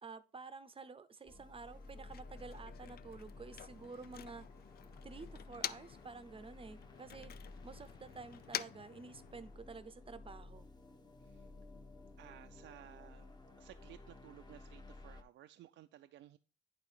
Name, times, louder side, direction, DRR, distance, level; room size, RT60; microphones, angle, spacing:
voice 1, 0.0-4.5 5.0-7.3 7.6-10.7, right 4 dB, 25° right, 0.6 m, -51 dB
sound 1, 1.3-15.2, left 2 dB, 20° left, 1.0 m, -55 dB
Motor vehicle (road), 1.7-6.1 6.4-9.7, left 10 dB, 50° left, 0.4 m, -48 dB
voice 2, 12.2-16.4, right 12 dB, 70° right, 0.4 m, -57 dB
8.8 x 3.8 x 4.9 m
cardioid pair, 90°, 20 cm